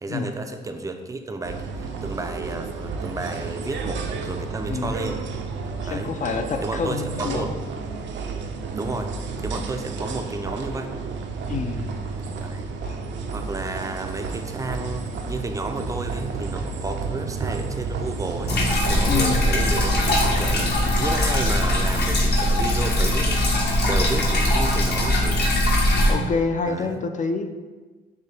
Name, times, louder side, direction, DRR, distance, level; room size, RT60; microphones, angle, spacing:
voice 1, 0.0-5.2 5.8-6.1 6.6-7.5 8.7-9.1 9.4-10.9 12.4-12.6 13.3-18.5 18.9-23.5 23.8-25.5 26.7-26.9, right 2 dB, 15° right, 5 dB, 0.4 m, -32 dB
sound 1, 1.4-21.0, right 4 dB, 65° right, 0.5 m, -31 dB
voice 2, 5.8-7.4 11.5-11.9 12.8-13.0 19.0-19.4 26.1-27.5, left 4 dB, 40° left, 6 dB, 0.4 m, -27 dB
sound 2, 18.5-26.1, left 1 dB, 55° left, 1.0 m, -21 dB
6.5 x 2.2 x 3.2 m, 1.3 s
cardioid pair, 90°, 20 cm